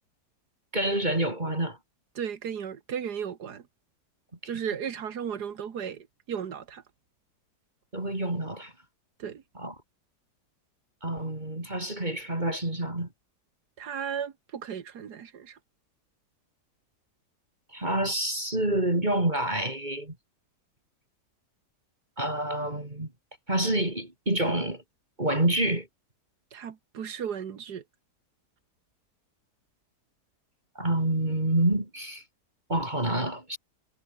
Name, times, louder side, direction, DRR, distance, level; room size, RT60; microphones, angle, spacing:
voice 1, 0.7-1.8 7.9-8.7 9.6-9.7 11.0-13.1 17.7-20.2 22.2-23.1 23.5-24.8 25.2-25.9 30.8-32.2 32.7-33.6, right 1 dB, 25° right, 4.0 m, -27 dB
voice 2, 2.2-3.6 4.5-6.8 9.2-9.4 13.8-15.6 26.5-27.8, right 8 dB, 75° right, 2.0 m, -35 dB
omnidirectional pair, 1.7 m